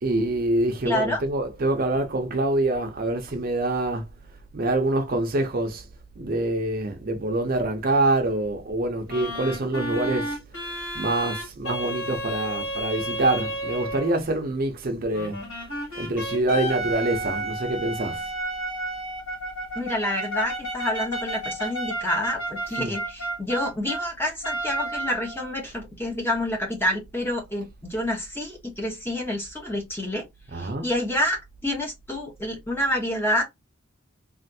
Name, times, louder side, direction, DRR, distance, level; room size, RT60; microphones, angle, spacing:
voice 1, 0.0-4.1 4.5-5.9 6.2-10.4 10.9-15.4 15.9-18.3 22.7-23.0 30.5-31.0, right 2 dB, 45° right, 0.6 m, -25 dB
voice 2, 0.8-1.2 19.7-30.2 30.5-33.4, left 1 dB, 10° left, 0.9 m, -28 dB
sound 1, 9.1-14.2 15.1-24.1 24.4-25.5, right 1 dB, 80° left, 1.4 m, -32 dB
3.3 x 2.4 x 2.6 m
head